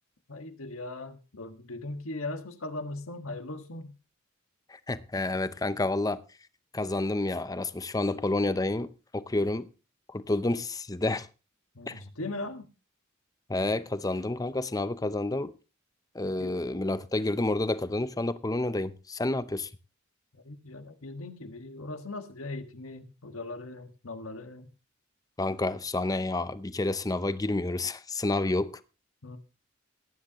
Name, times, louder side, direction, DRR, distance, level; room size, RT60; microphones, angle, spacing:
voice 1, 0.3-3.9 11.7-12.7 16.2-16.6 20.3-24.7 29.2-29.4, left 2 dB, 90° left, 1.6 m, -39 dB
voice 2, 4.7-6.2 6.7-9.7 10.1-11.3 11.9-12.0 13.5-15.5 16.1-19.7 25.4-28.8, left 2 dB, 15° left, 0.6 m, -29 dB
18.0 x 10.0 x 3.0 m
head